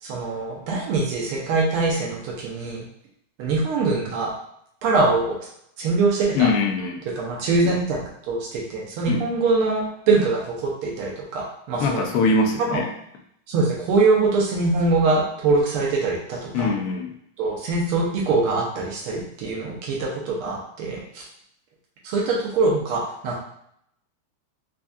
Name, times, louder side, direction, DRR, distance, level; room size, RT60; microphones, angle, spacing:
voice 1, 0.0-2.8 3.4-4.3 4.8-5.4 5.8-6.5 7.1-12.1 12.7-12.8 13.5-16.7 17.4-21.2 22.0-23.4, right 3 dB, 85° right, -2 dB, 1.8 m, -23 dB
voice 2, 6.3-7.0 9.1-9.2 11.8-12.9 16.5-17.1, left 3 dB, 75° left, 2 dB, 0.8 m, -22 dB
4.6 x 2.6 x 2.3 m, 0.71 s
omnidirectional pair, 2.4 m